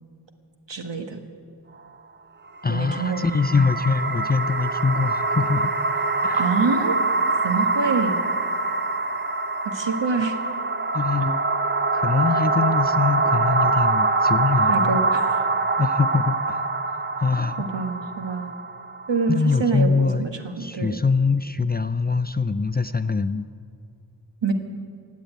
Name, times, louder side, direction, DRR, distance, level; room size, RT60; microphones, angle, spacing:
voice 1, 0.7-1.2 2.7-3.4 6.3-7.0 7.4-8.3 9.6-10.4 14.7-15.4 17.6-18.5 19.1-21.0 24.4-24.5, right 4 dB, 75° right, 6 dB, 1.5 m, -26 dB
voice 2, 2.6-5.8 6.2-6.5 10.9-11.4 11.9-15.0 15.8-17.6 19.3-20.3 20.6-23.5, left 4 dB, 25° left, 12 dB, 0.4 m, -23 dB
sound 1, 2.6-19.7, right 3 dB, 25° right, 0.6 m, -24 dB
17.0 x 8.4 x 9.0 m, 2.4 s
wide cardioid pair, 80°, 44 cm